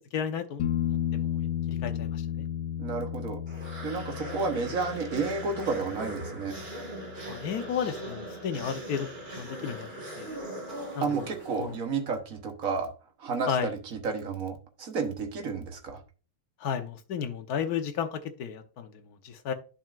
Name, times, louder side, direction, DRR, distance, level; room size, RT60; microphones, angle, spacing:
voice 1, 0.1-2.5 7.3-10.4 10.9-11.3 11.6-11.8 13.5-13.7 16.6-19.5, left 7 dB, 60° left, 7 dB, 1.2 m, -34 dB
sound 1, 0.6-8.2 11.2-11.3, left 10 dB, 85° left, 1.7 m, -34 dB
voice 2, 2.8-3.4 3.8-6.6 11.0-12.9 13.2-16.0, right 4 dB, 50° right, 5 dB, 1.3 m, -31 dB
sound 2, 3.5-11.9, right 1 dB, 25° right, 1.7 m, -40 dB
10.5 x 5.8 x 2.5 m, 0.35 s
omnidirectional pair, 2.2 m